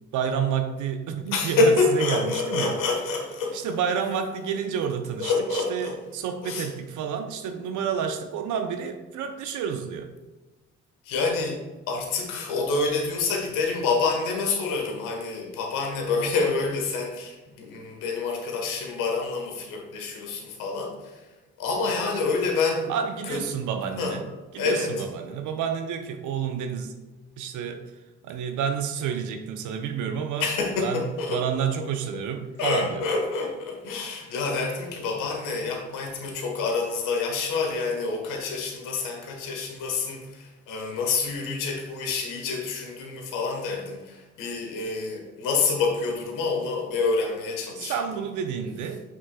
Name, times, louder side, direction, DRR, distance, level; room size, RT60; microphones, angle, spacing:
voice 1, 0.1-2.8 3.5-10.1 22.9-24.3 24.5-26.9 27.4-27.8 28.2-30.5 30.8-33.0 47.8-49.0, right 7 dB, 60° right, 6 dB, 0.8 m, -29 dB
voice 2, 1.3-3.6 5.2-5.9 6.4-6.7 11.0-11.6 11.9-21.2 21.6-22.9 23.3-23.4 24.0-24.2 24.6-24.9 30.4-31.4 32.6-48.0, left 4 dB, 70° left, 1 dB, 1.6 m, -27 dB
7.6 x 6.2 x 2.4 m, 1.2 s
hypercardioid pair, 50°, 34 cm